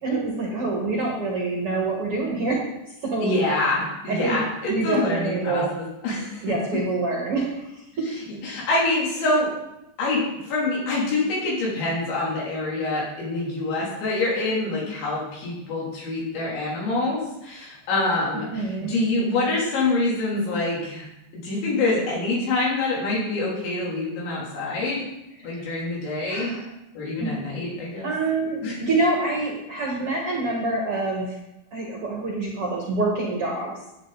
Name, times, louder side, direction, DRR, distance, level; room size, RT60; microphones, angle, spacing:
voice 1, 0.0-2.6 3.0-3.3 4.1-4.4 4.7-5.7 6.4-7.8 18.3-18.9 25.4-25.8 26.3-26.7 27.2-27.3 28.0-31.4 31.7-33.7, right 3 dB, 50° right, -3 dB, 1.8 m, -26 dB
voice 2, 3.2-6.6 8.4-9.5 10.0-21.1 21.3-25.1 25.4-26.6 27.0-28.1 28.6-28.8, left 2 dB, 85° left, -5 dB, 5.8 m, -26 dB
11.5 x 9.0 x 4.1 m, 0.89 s
omnidirectional pair, 5.1 m